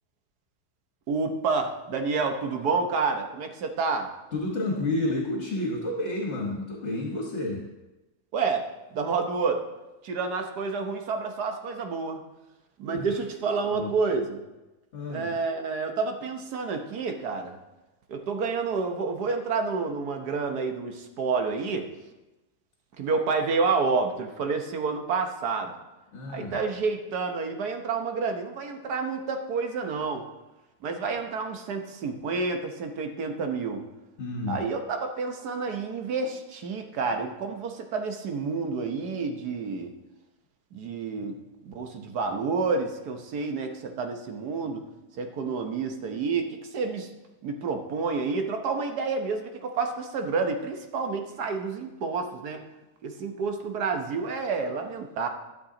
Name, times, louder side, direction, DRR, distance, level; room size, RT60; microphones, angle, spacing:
voice 1, 1.1-4.1 8.3-8.7 8.9-9.6 10.0-12.2 12.8-14.4 15.1-17.6 18.1-21.9 23.0-25.8 26.3-30.2 30.8-33.8 34.5-39.9 40.7-41.3 41.6-44.8 45.2-47.1 47.4-52.6 53.0-55.3, right 4 dB, 75° right, 5 dB, 1.6 m, -29 dB
voice 2, 4.3-7.6 12.8-13.0 13.7-13.9 14.9-15.3 26.1-26.6 34.2-34.6 41.2-41.3, left 2 dB, 50° left, 0 dB, 1.5 m, -30 dB
12.5 x 7.1 x 3.8 m, 1.1 s
omnidirectional pair, 1.7 m